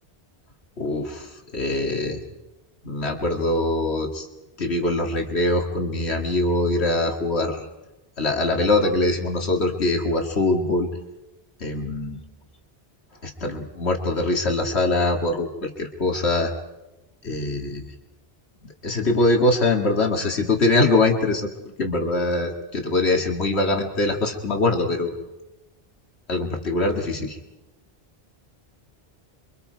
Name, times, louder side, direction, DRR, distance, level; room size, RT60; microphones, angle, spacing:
voice 1, 0.8-2.2 2.8-4.3 4.6-7.7 8.2-10.9 11.6-12.2 13.2-16.5 17.2-17.8 18.6-25.2 26.3-27.4, left 2 dB, 85° left, 2 dB, 2.4 m, -23 dB
29.5 x 24.0 x 4.7 m, 0.98 s
omnidirectional pair, 1.1 m